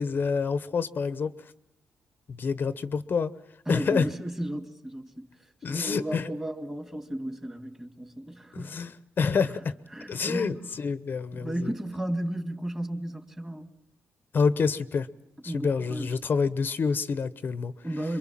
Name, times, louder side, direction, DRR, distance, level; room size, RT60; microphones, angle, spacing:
voice 1, 0.0-1.5 2.3-3.3 3.7-4.1 5.6-6.3 8.5-9.7 10.1-11.7 14.3-15.1 15.4-17.7, left 5 dB, 45° left, 0.9 m, -27 dB
voice 2, 3.7-5.3 5.7-8.9 9.9-10.6 11.3-13.7 15.5-16.1 17.8-18.2, right 1 dB, 10° right, 2.2 m, -34 dB
27.0 x 23.0 x 7.5 m
cardioid pair, 110°, 5 cm